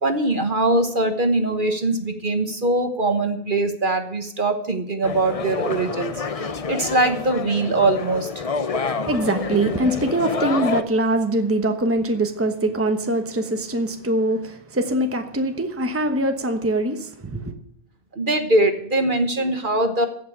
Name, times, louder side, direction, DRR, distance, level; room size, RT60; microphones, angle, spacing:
voice 1, 0.0-8.4 18.1-20.1, right 2 dB, 45° right, 1.3 m, -22 dB
sound 1, 5.0-10.8, left 4 dB, 35° left, 0.6 m, -28 dB
voice 2, 9.1-17.5, right 1 dB, 10° right, 1.1 m, -23 dB
16.0 x 6.0 x 8.6 m
omnidirectional pair, 1.3 m